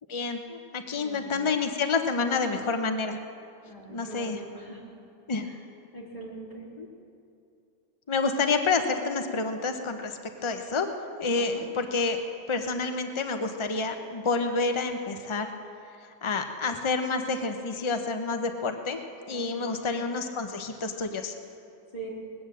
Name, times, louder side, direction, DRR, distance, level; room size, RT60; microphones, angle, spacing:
voice 1, 0.1-3.2 3.9-4.4 5.3-5.5 6.8-6.9 8.1-10.9 11.2-12.2 12.5-15.5 16.2-19.0 19.3-21.3, left 4 dB, 55° left, 6 dB, 0.3 m, -28 dB
voice 2, 1.0-1.4 3.6-4.8 5.4-5.6 5.9-6.7 11.3-11.7 19.3-20.1 21.9-22.1, right 2 dB, 30° left, -5 dB, 3.3 m, -43 dB
20.0 x 8.8 x 7.5 m, 2.6 s
omnidirectional pair, 1.7 m